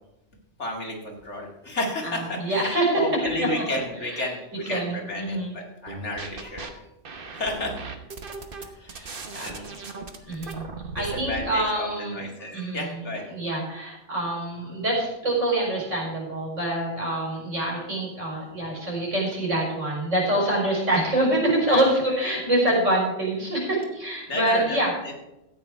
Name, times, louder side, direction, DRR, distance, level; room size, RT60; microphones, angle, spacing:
voice 1, 0.6-6.8 7.3-7.7 8.6-9.7 10.2-10.4 11.0-13.3 21.7-21.8 22.2-22.4 24.3-24.8 25.0-25.2, left 1 dB, 65° left, 0 dB, 2.6 m, -32 dB
voice 2, 2.0-3.2 4.0-4.3 4.7-5.5 8.9-9.9 10.2-10.6 10.9-12.2 12.5-13.0 13.3-24.9, right 1 dB, 75° right, -3 dB, 5.1 m, -26 dB
sound 1, 5.9-6.7 7.0-11.5, right 4 dB, 50° right, 1.2 m, -38 dB
13.5 x 9.0 x 4.6 m, 0.91 s
omnidirectional pair, 1.3 m